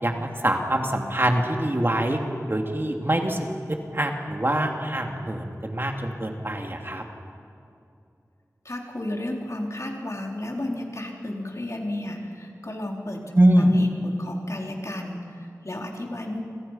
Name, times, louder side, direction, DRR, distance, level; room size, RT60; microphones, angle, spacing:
voice 1, 0.0-2.2 2.5-3.4 3.9-7.0 13.3-13.7, right 1 dB, 40° right, 2 dB, 2.8 m, -24 dB
voice 2, 8.6-13.2 13.6-16.4, left 1 dB, 55° left, 0 dB, 3.9 m, -33 dB
29.0 x 26.0 x 5.8 m, 2.6 s
wide cardioid pair, 50°, 6 cm